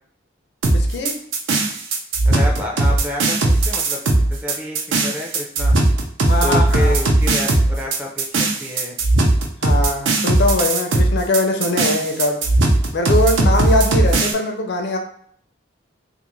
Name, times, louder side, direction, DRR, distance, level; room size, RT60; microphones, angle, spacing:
sound 1, 0.6-14.3, right 2 dB, 80° right, 0.6 m, -17 dB
voice 1, 0.7-1.2 6.2-6.9 9.6-12.4 12.9-15.0, left 2 dB, 60° left, 4 dB, 0.4 m, -21 dB
voice 2, 2.3-4.0 4.3-5.7 6.4-9.0, left 1 dB, 5° right, -1 dB, 0.4 m, -29 dB
2.5 x 2.5 x 3.0 m, 0.64 s
head